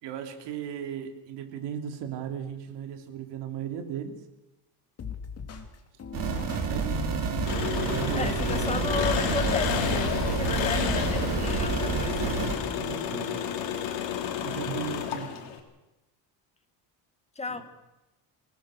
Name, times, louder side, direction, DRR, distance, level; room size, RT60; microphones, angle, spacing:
voice 1, 0.0-4.2 6.6-7.3 7.8-8.6 10.4-10.7 12.7-13.4 14.4-15.5 17.5-17.6, right 8 dB, 70° right, 6 dB, 3.4 m, -36 dB
sound 1, 5.0-13.0, left 6 dB, 35° left, 2.7 m, -42 dB
sound 2, 6.1-12.5, right 4 dB, 50° right, 4.5 m, -29 dB
Engine, 7.5-15.6, left 9 dB, 90° left, 3.7 m, -31 dB
voice 2, 8.1-12.2 17.4-17.6, left 3 dB, 15° left, 8 dB, 1.7 m, -34 dB
25.5 x 19.0 x 6.6 m, 0.98 s
cardioid pair, 160°, 43 cm